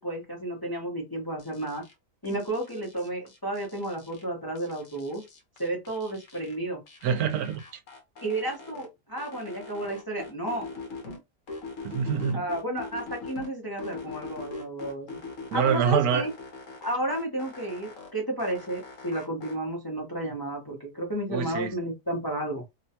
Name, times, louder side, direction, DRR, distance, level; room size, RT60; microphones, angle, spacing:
voice 1, 0.0-1.8 2.2-5.2 5.6-6.8 8.2-10.7 11.0-11.1 12.3-15.2 15.5-16.3 16.8-22.6, right 1 dB, 20° left, 0.7 m, -32 dB
sound 1, 1.4-1.9 2.2-4.2 4.5-6.6 6.9-8.9 9.2-11.2 11.5-13.5 13.8-15.8 16.1-18.1 18.4-19.5, left 3 dB, 65° left, 1.2 m, -42 dB
voice 2, 7.0-7.6 11.8-12.5 15.5-16.3 21.3-21.7, right 7 dB, 80° right, 1.1 m, -25 dB
3.0 x 2.2 x 2.7 m
omnidirectional pair, 1.6 m